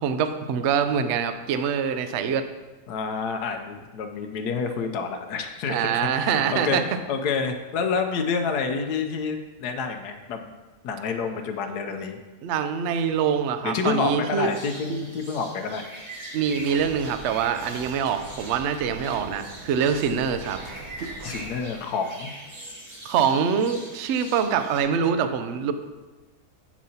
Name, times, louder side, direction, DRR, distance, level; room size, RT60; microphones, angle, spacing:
voice 1, 0.0-2.5 5.7-6.8 12.4-14.5 14.9-15.0 16.3-20.6 23.0-25.7, right 7 dB, 70° right, 9 dB, 0.7 m, -24 dB
voice 2, 2.9-10.5 10.8-12.2 13.6-15.8 21.2-22.3, left 5 dB, 80° left, 5 dB, 1.2 m, -28 dB
sound 1, 14.4-24.8, right 1 dB, 25° right, 1.2 m, -42 dB
sound 2, 16.4-21.6, right 3 dB, 90° right, 1.4 m, -42 dB
8.3 x 7.3 x 2.8 m, 1.2 s
omnidirectional pair, 1.7 m